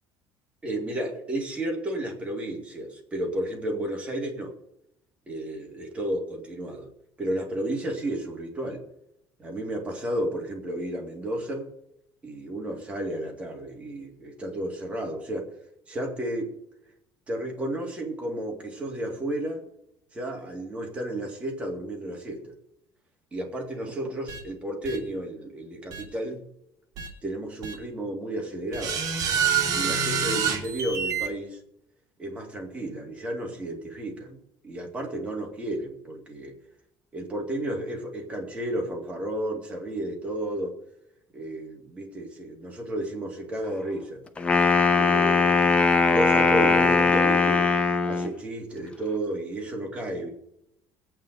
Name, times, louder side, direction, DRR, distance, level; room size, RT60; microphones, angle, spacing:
voice 1, 0.6-4.5 5.3-6.9 7.2-8.8 9.4-11.7 12.2-15.5 15.9-16.6 17.3-19.6 20.1-22.5 23.3-26.5 27.2-29.0 29.7-31.6 32.2-34.4 34.6-36.5 37.1-40.8 41.3-44.2 44.9-47.7 48.0-50.3, right 1 dB, 15° right, 0 dB, 2.1 m, -32 dB
sound 1, 24.3-24.4 24.8-25.0 25.9-26.0 27.0-27.1 27.6-27.7 28.7-31.3, right 7 dB, 45° right, 2.0 m, -26 dB
Wind instrument woodwind instrument, 44.4-48.3, left 4 dB, 15° left, 0.7 m, -20 dB
21.5 x 8.9 x 3.9 m, 0.80 s
cardioid pair, 170°, 9 cm